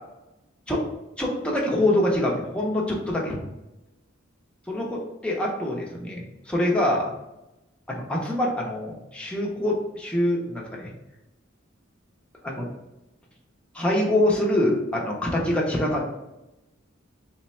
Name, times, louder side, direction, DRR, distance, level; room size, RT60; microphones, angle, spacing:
voice 1, 1.2-3.4 4.7-7.1 7.9-10.9 12.4-12.7 13.7-16.0, left 1 dB, 5° left, -3 dB, 0.7 m, -25 dB
3.2 x 2.1 x 4.2 m, 0.95 s
head